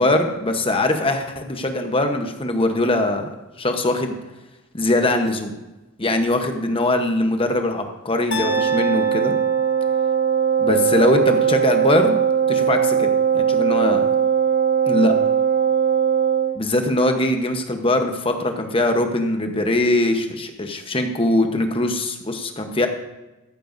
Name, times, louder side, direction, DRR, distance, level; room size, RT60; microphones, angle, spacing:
voice 1, 0.0-3.2 3.6-4.1 4.7-5.5 6.0-9.4 10.6-12.2 12.5-13.1 13.3-14.1 14.9-15.1 16.6-22.9, left 1 dB, 25° left, 5 dB, 1.0 m, -21 dB
sound 1, 8.3-10.4, equal, 55° left, 1.2 m, -31 dB
Wind instrument woodwind instrument, 8.3-16.6, right 7 dB, 90° right, 3.9 m, -19 dB
14.5 x 12.0 x 2.7 m, 1.0 s
head